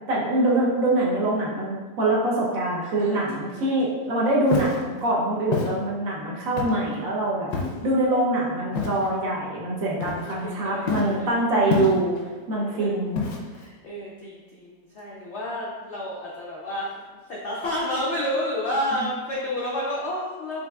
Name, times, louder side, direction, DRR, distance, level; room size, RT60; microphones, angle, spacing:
voice 1, 0.1-7.5 7.8-12.1 12.5-13.2, right 1 dB, 55° right, -4 dB, 1.2 m, -24 dB
voice 2, 3.0-3.6 10.2-11.3 12.5-13.0 13.5-16.9 17.3-20.7, left 1 dB, 65° left, -5 dB, 0.7 m, -30 dB
Walk footsteps, 4.5-4.8 5.5-5.7 6.6-6.9 7.5-7.9 8.7-9.1 10.0-10.5 10.9-11.2 11.7-12.2 13.2-13.6, left 4 dB, 80° left, 1.3 m, -27 dB
6.0 x 3.1 x 2.3 m, 1.3 s
omnidirectional pair, 2.0 m